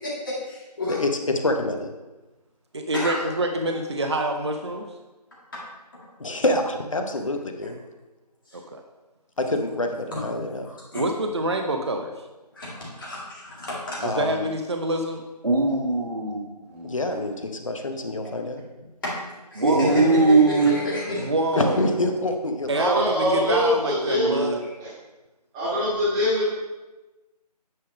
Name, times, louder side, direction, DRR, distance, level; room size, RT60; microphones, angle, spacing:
voice 1, 0.0-1.0 2.9-3.3 5.5-5.6 8.5-8.6 10.1-11.0 12.5-14.0 19.0-19.1 19.5-21.3 24.6-24.8, left 2 dB, 30° left, -6 dB, 2.1 m, -30 dB
voice 2, 0.9-1.9 6.2-7.8 9.4-10.6 14.0-14.5 16.8-18.6 21.6-22.7, left 2 dB, 50° left, 5 dB, 0.9 m, -26 dB
voice 3, 2.7-4.9 8.5-8.8 10.9-12.1 14.0-15.2 19.6-20.1 20.6-20.7 21.1-21.9 22.7-24.6, right 1 dB, 40° right, 4 dB, 0.6 m, -26 dB
voice 4, 15.4-17.0 19.6-20.8 24.1-24.6, right 3 dB, 75° right, -4 dB, 1.8 m, -21 dB
voice 5, 22.7-24.4 24.8-24.9 25.5-26.5, equal, 5° right, -11 dB, 1.5 m, -23 dB
9.6 x 3.5 x 5.1 m, 1.1 s
figure-of-eight pair, 160°, 21 cm